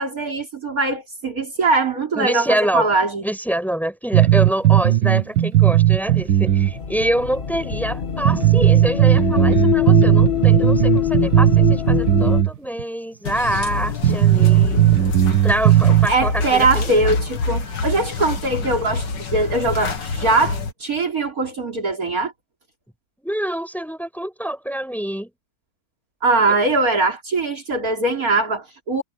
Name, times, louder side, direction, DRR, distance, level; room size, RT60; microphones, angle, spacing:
voice 1, 0.0-3.2 16.1-19.1 19.3-22.3 26.2-29.0, right 3 dB, 45° right, 3.8 m, -21 dB
voice 2, 2.2-14.9 15.4-16.9 23.2-25.3 26.5-26.6, right 1 dB, ahead, 7.8 m, -26 dB
sound 1, 4.1-6.7 7.0-7.1 7.7-7.8 8.3-12.5 12.8-12.9 13.5-13.6 14.0-16.1, right 13 dB, 70° right, 2.1 m, -15 dB
sound 2, 6.0-12.4, left 10 dB, 35° left, 1.3 m, -23 dB
sound 3, 13.3-20.7, left 4 dB, 65° left, 2.5 m, -26 dB
omnidirectional pair, 2.1 m